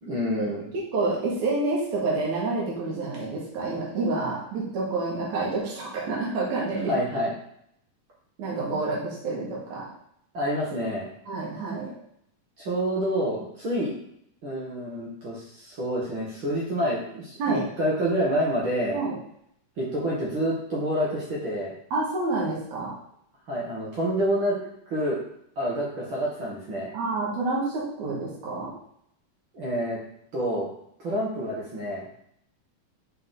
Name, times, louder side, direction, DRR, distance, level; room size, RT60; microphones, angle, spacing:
voice 1, 0.0-0.7 6.9-7.3 10.3-11.1 12.6-13.9 14.4-19.0 19.8-21.7 23.5-24.6 24.9-25.2 25.6-26.9 29.5-30.0 30.3-30.7 31.0-32.1, equal, 45° right, -5 dB, 1.9 m, -28 dB
voice 2, 0.9-6.9 8.4-9.9 11.3-11.9 17.4-17.6 18.9-19.2 21.9-22.9 26.9-28.7, right 3 dB, 60° right, -5 dB, 3.0 m, -28 dB
6.6 x 4.5 x 3.8 m, 0.71 s
omnidirectional pair, 3.8 m